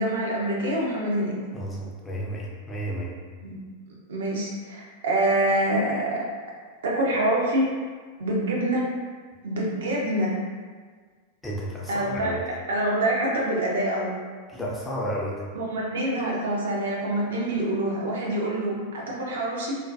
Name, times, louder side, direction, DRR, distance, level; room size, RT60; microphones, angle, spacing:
voice 1, 0.0-1.4 3.4-3.6 4.1-6.2 6.8-7.6 8.2-8.8 9.4-10.3 11.9-12.4 12.7-14.1 15.5-19.7, right 1 dB, 60° right, -3 dB, 0.6 m, -25 dB
voice 2, 1.5-3.1 11.4-12.4 14.5-15.5, equal, 10° left, -5 dB, 0.5 m, -32 dB
2.3 x 2.1 x 2.5 m, 1.5 s
figure-of-eight pair, 90°, 0 cm